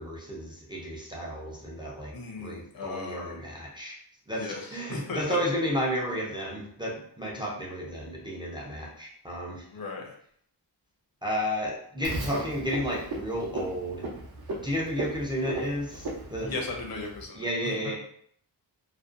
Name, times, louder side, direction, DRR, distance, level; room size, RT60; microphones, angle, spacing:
voice 1, 0.0-3.9 4.3-9.7 11.2-14.0 14.6-16.5 17.3-18.0, equal, 10° right, -3 dB, 0.3 m, -32 dB
voice 2, 2.1-3.4 4.3-4.6 4.9-5.4 9.7-10.1 16.4-17.7, left 3 dB, 60° left, 1 dB, 0.6 m, -36 dB
Frog, 12.0-17.2, right 2 dB, 60° right, 0.6 m, -37 dB
2.5 x 2.1 x 2.4 m, 0.64 s
wide cardioid pair, 170°, 41 cm